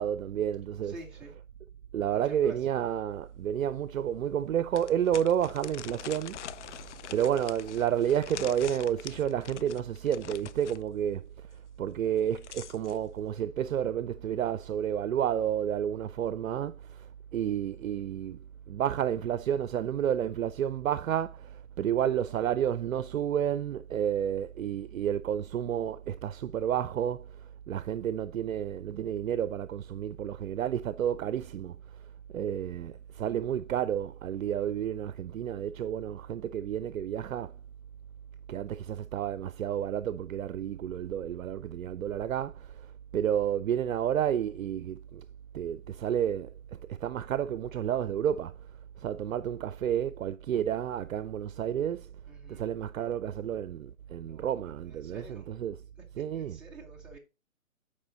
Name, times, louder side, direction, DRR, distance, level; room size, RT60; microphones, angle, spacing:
voice 1, 0.0-0.9 1.9-11.5 11.8-18.4 18.7-31.8 32.3-37.6 38.5-45.2 45.5-48.5 49.0-52.1 52.5-55.8 56.2-56.6, right 9 dB, 75° right, 0.6 m, -31 dB
voice 2, 0.8-1.4 2.1-2.8 52.3-52.6 54.3-54.4 54.8-55.5 56.3-57.2, right 1 dB, ahead, 0.7 m, -49 dB
sound 1, 3.2-3.3 3.8-3.9 4.7-10.8 12.1-13.0, left 10 dB, 60° left, 0.5 m, -44 dB
8.6 x 5.0 x 3.9 m
hypercardioid pair, 145°, 41 cm